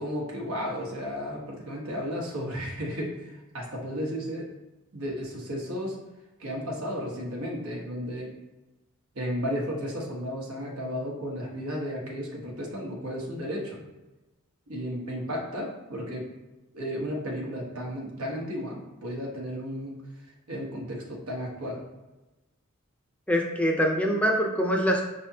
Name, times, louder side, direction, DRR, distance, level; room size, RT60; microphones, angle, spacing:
voice 1, 0.0-4.5 4.9-6.0 6.4-8.3 9.1-13.8 14.7-16.3 16.7-19.9 20.5-21.8, equal, 85° right, -2 dB, 1.1 m, -33 dB
voice 2, 23.3-25.0, equal, 5° left, 0 dB, 0.5 m, -24 dB
5.7 x 3.3 x 2.8 m, 1.1 s
head